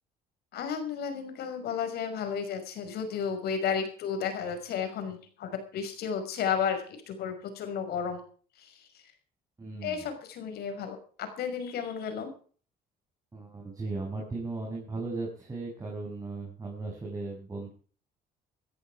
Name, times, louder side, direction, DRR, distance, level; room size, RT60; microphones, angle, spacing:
voice 1, 0.5-8.2 8.6-8.9 9.8-12.3, left 7 dB, 70° left, 8 dB, 5.7 m, -33 dB
voice 2, 9.6-10.0 13.3-17.7, right 3 dB, 20° right, -2 dB, 6.6 m, -37 dB
15.0 x 14.5 x 4.8 m, 0.43 s
cardioid pair, 110°, 17 cm